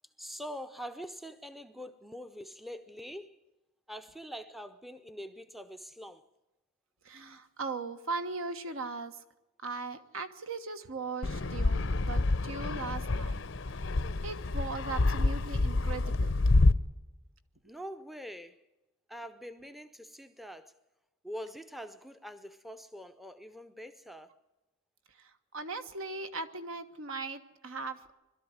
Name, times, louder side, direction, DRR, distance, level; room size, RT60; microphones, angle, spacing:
voice 1, 0.2-3.4 3.9-6.2 17.6-18.6 19.1-20.7 21.2-24.3, equal, ahead, 0.6 m, -44 dB
voice 2, 7.0-9.2 9.6-13.4 13.7-13.8 14.2-16.3 25.2-28.1, right 3 dB, 70° right, 1.4 m, -39 dB
Fixed-wing aircraft airplane, 11.2-16.7, left 2 dB, 60° left, 0.7 m, -28 dB
21.5 x 13.0 x 9.5 m
head